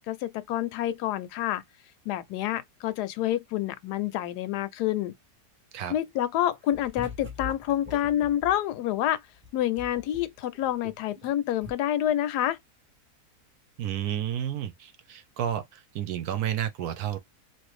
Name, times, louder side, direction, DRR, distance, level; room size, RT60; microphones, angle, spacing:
voice 1, 0.1-1.6 2.1-5.1 5.9-9.2 9.5-12.6, left 12 dB, 85° left, 1.1 m, -28 dB
sound 1, 6.5-8.6 9.3-11.3 11.6-11.7, left 4 dB, 10° right, 0.6 m, -42 dB
voice 2, 13.8-17.2, right 10 dB, 75° right, 1.1 m, -31 dB
3.1 x 2.6 x 3.1 m
omnidirectional pair, 1.7 m